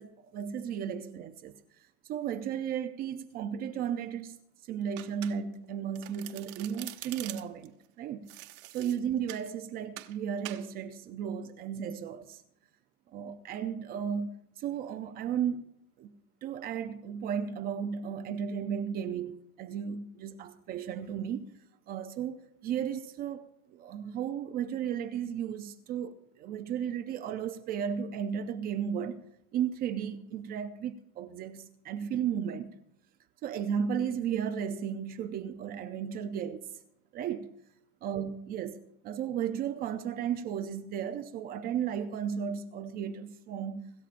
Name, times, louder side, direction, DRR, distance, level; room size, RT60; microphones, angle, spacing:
voice 1, 0.0-1.6 2.1-4.4 4.7-8.3 8.7-12.4 13.1-15.6 16.0-16.1 16.4-21.5 21.9-29.2 29.5-32.8 33.4-36.7 37.1-37.5 38.0-43.9, right 8 dB, 20° right, 0.4 m, -34 dB
Domestic sounds home sounds, 5.0-5.6 5.9-7.7 8.3-9.5 10.0-10.2 10.4-10.7, right 17 dB, 50° right, 1.1 m, -44 dB
25.5 x 13.0 x 2.5 m
supercardioid pair, 135°, 44 cm